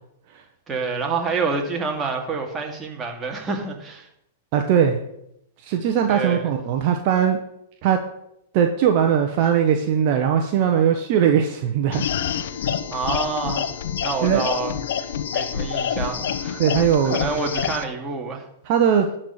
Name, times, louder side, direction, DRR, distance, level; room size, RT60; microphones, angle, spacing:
voice 1, 0.7-4.1 6.1-6.5 12.9-13.7 14.0-14.7 15.0-16.6 17.0-18.4, right 4 dB, 20° right, 1 dB, 2.2 m, -27 dB
voice 2, 4.5-5.0 5.6-7.4 7.8-8.0 8.5-12.1 12.3-12.5 14.2-14.4 16.6-17.2 18.6-19.1, right 8 dB, 50° right, 4 dB, 1.0 m, -20 dB
sound 1, 11.9-17.8, left 8 dB, 65° left, 0.8 m, -27 dB
11.5 x 4.4 x 8.0 m, 0.78 s
hypercardioid pair, 115°, 0 cm